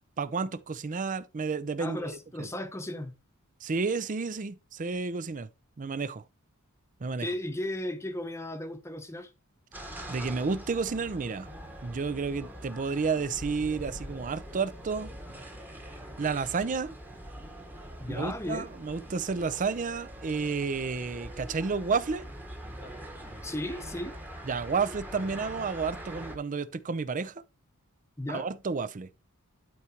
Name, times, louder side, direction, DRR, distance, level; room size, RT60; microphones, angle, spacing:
voice 1, 0.2-2.5 3.6-5.5 5.8-6.2 7.0-7.3 10.1-11.5 11.8-15.1 16.2-17.0 18.1-22.3 24.5-27.4 28.3-29.1, right 4 dB, 35° right, 0.5 m, -31 dB
voice 2, 1.8-3.1 7.2-9.3 18.0-18.7 23.4-24.1 28.2-28.5, left 1 dB, 10° left, 0.9 m, -35 dB
sound 1, 9.7-26.4, right 1 dB, 10° right, 1.2 m, -43 dB
12.0 x 4.5 x 2.9 m
head